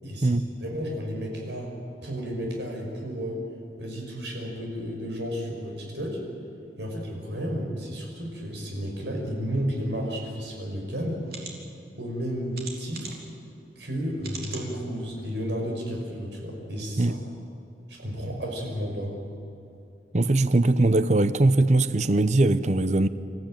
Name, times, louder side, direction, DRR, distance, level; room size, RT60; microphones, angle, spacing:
voice 1, 0.0-1.7 2.0-3.4 3.8-6.2 6.8-11.2 12.0-13.2 13.8-17.2 17.9-19.1, equal, 80° right, 0 dB, 5.6 m, -32 dB
sound 1, 11.2-11.5 12.5-13.3 14.2-14.7 15.2-15.3 15.7-15.8, right 5 dB, 55° right, 3.6 m, -40 dB
voice 2, 20.1-23.1, right 2 dB, 40° right, 13 dB, 0.7 m, -21 dB
27.0 x 15.0 x 9.0 m, 2.8 s
head